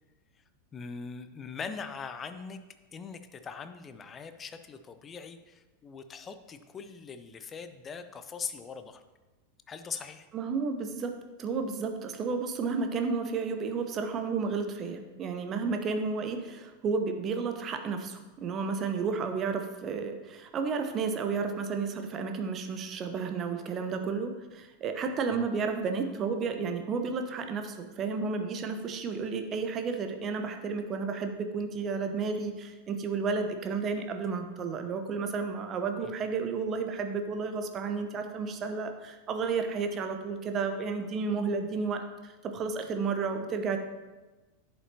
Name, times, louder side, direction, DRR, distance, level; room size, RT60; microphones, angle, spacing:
voice 1, 0.7-2.6 2.9-9.0 9.7-10.3 25.3-25.5 36.0-36.1, left 5 dB, 20° left, 10 dB, 0.6 m, -41 dB
voice 2, 10.3-43.8, right 5 dB, 30° right, 6 dB, 0.9 m, -32 dB
11.0 x 7.7 x 2.9 m, 1.2 s
figure-of-eight pair, 90°, 0 cm